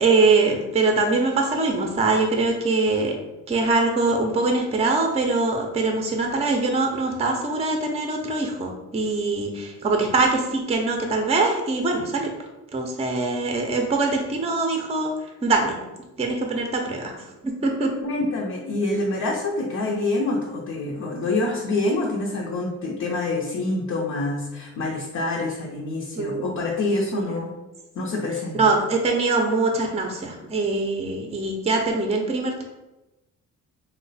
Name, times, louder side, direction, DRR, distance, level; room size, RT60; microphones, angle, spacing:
voice 1, 0.0-3.2 3.5-12.3 12.7-15.1 15.4-15.8 16.2-17.1 17.6-17.9 26.2-26.4 27.1-27.3 28.6-32.6, right 3 dB, 20° right, 3 dB, 0.5 m, -23 dB
voice 2, 18.0-27.5 27.9-28.6, left 2 dB, 60° left, -2 dB, 0.7 m, -26 dB
3.0 x 2.1 x 3.9 m, 1.0 s
cardioid pair, 90°, 30 cm